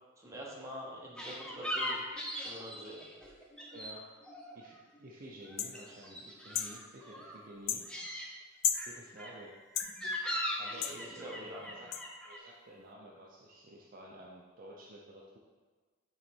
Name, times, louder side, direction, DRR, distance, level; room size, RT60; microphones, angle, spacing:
voice 1, 0.2-2.0 2.4-3.1 10.9-11.6, equal, 15° right, -3 dB, 1.0 m, -45 dB
sound 1, 1.2-4.0 4.2-5.1 5.4-7.4 7.8-8.3 8.7-12.4, equal, 5° left, 0.6 m, -40 dB
voice 2, 3.7-4.0 4.5-7.8 8.9-9.5 10.6-11.9 12.2-15.4, right 1 dB, 40° right, -2 dB, 0.6 m, -51 dB
sound 2, 5.6-5.7 6.5-6.7 7.7-7.8 8.6-8.9 9.8-9.9 10.8-11.0 11.9-12.0, left 10 dB, 65° left, 0.4 m, -32 dB
6.7 x 3.2 x 4.5 m, 1.4 s
head